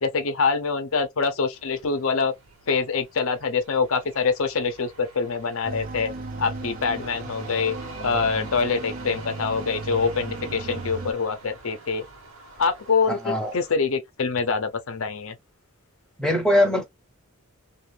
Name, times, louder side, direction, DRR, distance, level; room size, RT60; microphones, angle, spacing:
voice 1, 0.0-2.3 2.7-12.1 12.6-15.4, left 5 dB, 65° left, 0.7 m, -25 dB
sound 1, 1.5-13.7, right 3 dB, 65° right, 1.2 m, -45 dB
sound 2, 5.6-11.1, right 3 dB, 40° right, 0.4 m, -36 dB
voice 2, 13.1-13.5 16.2-16.8, left 1 dB, 5° left, 0.7 m, -21 dB
2.6 x 2.5 x 3.2 m
head